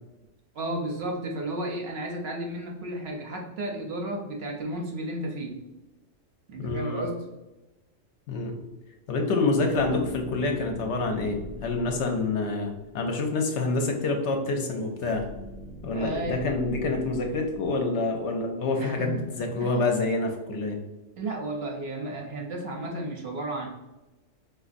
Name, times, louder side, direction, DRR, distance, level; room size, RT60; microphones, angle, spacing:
voice 1, 0.5-5.5 6.5-7.2 15.9-16.4 18.8-19.1 19.6-19.8 21.2-23.7, right 1 dB, 65° right, 0 dB, 0.7 m, -33 dB
voice 2, 6.6-7.0 8.3-8.5 9.1-15.2 15.8-20.8, left 3 dB, 70° left, 3 dB, 0.8 m, -27 dB
sound 1, 9.6-13.0 15.0-18.2, left 1 dB, 15° left, 0.7 m, -43 dB
4.1 x 2.4 x 2.5 m, 1.0 s
omnidirectional pair, 1.3 m